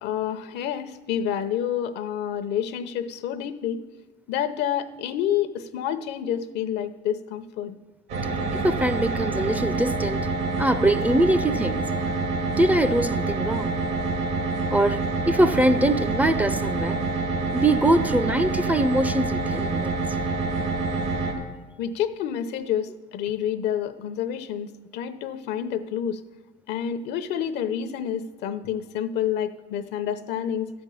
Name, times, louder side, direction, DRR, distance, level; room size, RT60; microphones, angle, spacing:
voice 1, 0.0-3.8 4.3-7.8 21.8-26.2 26.7-30.7, left 9 dB, 80° left, 0.7 m, -28 dB
sound 1, 8.1-21.3, right 3 dB, 85° right, 1.9 m, -27 dB
voice 2, 8.5-10.3 10.6-11.9 12.6-13.7 14.7-15.0 15.3-17.0 17.5-19.9, right 1 dB, 10° right, 0.4 m, -23 dB
13.0 x 5.3 x 8.3 m
cardioid pair, 110°, 17 cm